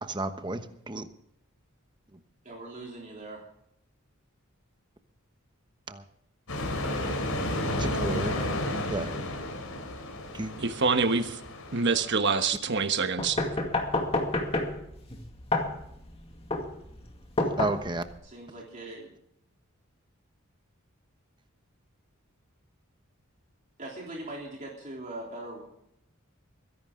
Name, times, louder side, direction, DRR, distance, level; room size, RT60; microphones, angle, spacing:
voice 1, 0.0-1.1 2.1-2.2 5.9-6.1 7.5-8.4 8.9-9.2 10.3-10.5 17.6-18.0, right 2 dB, 20° right, 9 dB, 1.1 m, -33 dB
voice 2, 2.4-3.4 6.6-7.0 7.5-8.5 18.2-19.1 23.8-25.6, right 2 dB, 35° right, -2 dB, 3.4 m, -41 dB
sound 1, 6.5-12.1, left 1 dB, 80° left, 3.6 m, -32 dB
voice 3, 10.6-11.4 11.7-13.4, right 4 dB, 55° right, 9 dB, 1.2 m, -26 dB
sound 2, 13.2-18.2, left 2 dB, 25° left, 2.2 m, -29 dB
23.0 x 11.0 x 3.8 m, 0.76 s
head